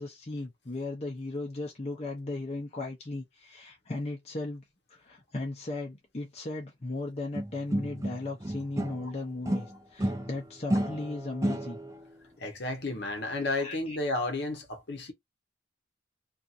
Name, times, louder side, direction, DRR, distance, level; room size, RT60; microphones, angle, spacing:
voice 1, 0.0-4.6 4.9-11.8 13.6-14.0, left 2 dB, 30° left, 0.6 m, -37 dB
sound 1, 7.3-9.1 9.4-12.0, right 1 dB, 15° right, 0.4 m, -32 dB
voice 2, 12.4-15.1, left 2 dB, 55° left, 0.9 m, -32 dB
2.8 x 2.5 x 2.4 m
head